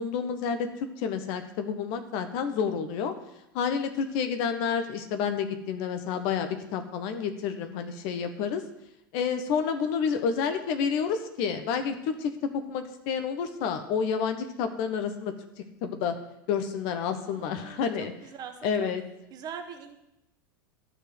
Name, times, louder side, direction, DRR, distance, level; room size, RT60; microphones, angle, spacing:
voice 1, 0.0-3.1 3.5-8.6 9.1-15.3 15.8-16.2 16.5-18.1 18.6-19.0, left 6 dB, 50° left, 8 dB, 1.3 m, -29 dB
voice 2, 17.2-18.9 19.3-20.0, right 7 dB, 35° right, 5 dB, 1.6 m, -42 dB
12.5 x 4.9 x 7.9 m, 0.87 s
figure-of-eight pair, 90°, 12 cm